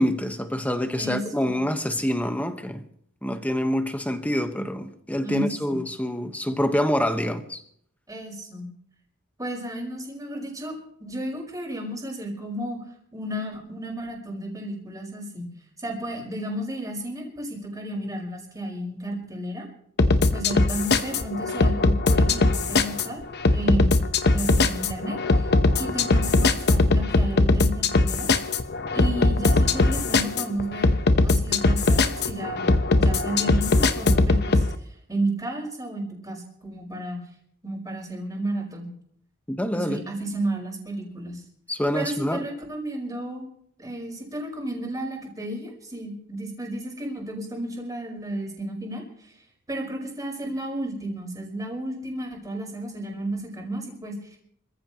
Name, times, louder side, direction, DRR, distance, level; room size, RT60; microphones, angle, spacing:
voice 1, 0.0-2.8 3.2-7.6 39.5-40.0 41.7-42.4, equal, 5° left, 1.2 m, -26 dB
voice 2, 1.0-1.6 5.2-5.8 8.1-8.7 9.4-10.7 11.0-12.8 13.1-15.5 15.8-19.7 20.3-23.2 23.5-23.9 24.3-28.3 28.9-30.9 31.2-37.2 37.6-38.9 39.7-41.4 41.9-43.5 43.8-49.3 49.7-54.4, right 1 dB, 15° right, 5.1 m, -32 dB
sound 1, 20.0-34.7, left 2 dB, 50° left, 1.0 m, -21 dB
27.0 x 15.0 x 3.0 m
head